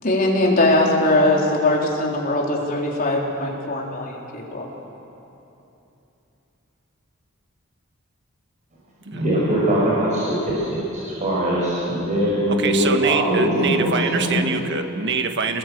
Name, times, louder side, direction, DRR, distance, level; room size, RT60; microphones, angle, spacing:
voice 1, 0.0-4.7, left 1 dB, 40° left, -2 dB, 4.1 m, -20 dB
voice 2, 9.2-14.5, equal, 35° right, -7 dB, 6.2 m, -21 dB
voice 3, 12.5-15.6, right 4 dB, 55° right, 6 dB, 1.6 m, -24 dB
28.5 x 21.5 x 8.0 m, 3.0 s
head